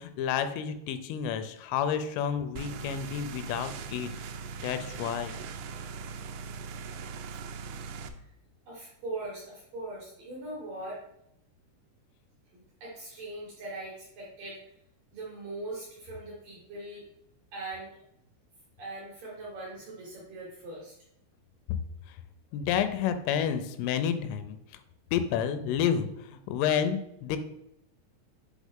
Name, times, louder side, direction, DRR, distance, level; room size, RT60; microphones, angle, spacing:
voice 1, 0.0-4.1 4.6-5.4 22.1-22.2 22.5-24.6 25.1-27.4, left 8 dB, 85° left, 9 dB, 3.2 m, -30 dB
sound 1, 2.6-8.1, right 5 dB, 90° right, 2.5 m, -40 dB
voice 2, 7.6-8.3 8.7-11.0 12.5-14.6 15.1-17.0 17.5-17.9 18.8-21.0, right 2 dB, 65° right, -5 dB, 2.2 m, -41 dB
7.2 x 4.0 x 3.6 m, 0.80 s
omnidirectional pair, 5.6 m